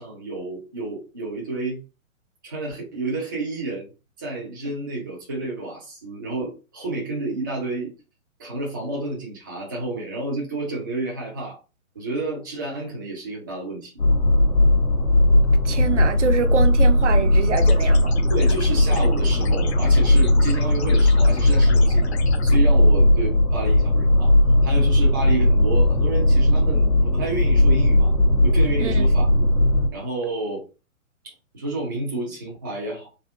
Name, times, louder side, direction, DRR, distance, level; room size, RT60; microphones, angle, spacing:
voice 1, 0.0-1.8 2.4-3.9 4.2-7.9 8.4-11.6 11.9-13.9 18.3-22.1 22.4-24.3 24.6-28.1 28.4-29.5 29.9-30.6 31.2-33.1, right 2 dB, 15° right, 0.4 m, -30 dB
sound 1, 14.0-29.9, left 1 dB, 85° left, 1.1 m, -17 dB
voice 2, 15.6-18.1 28.8-29.1, right 6 dB, 60° right, 0.6 m, -25 dB
sound 2, 17.5-22.6, left 5 dB, 50° left, 0.6 m, -37 dB
3.5 x 2.7 x 2.4 m
figure-of-eight pair, 125°, 41 cm